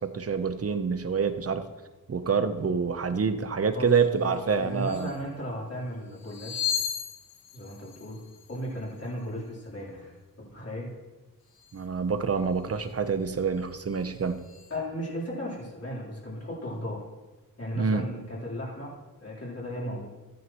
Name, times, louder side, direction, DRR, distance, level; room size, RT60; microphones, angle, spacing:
voice 1, 0.0-1.6 2.1-5.1 11.7-14.4 17.7-18.1, right 5 dB, 40° right, 10 dB, 0.8 m, -27 dB
voice 2, 4.2-6.7 7.5-8.2 8.5-10.9 14.7-17.0 17.6-18.9 19.2-20.1, equal, 45° left, -5 dB, 3.7 m, -36 dB
sound 1, 4.3-4.4 4.7-5.2 6.1-9.2 11.5-11.8 12.6-12.9 13.3-14.8, left 8 dB, 85° left, 1.1 m, -37 dB
14.0 x 9.4 x 3.0 m, 1.2 s
wide cardioid pair, 95°, 35 cm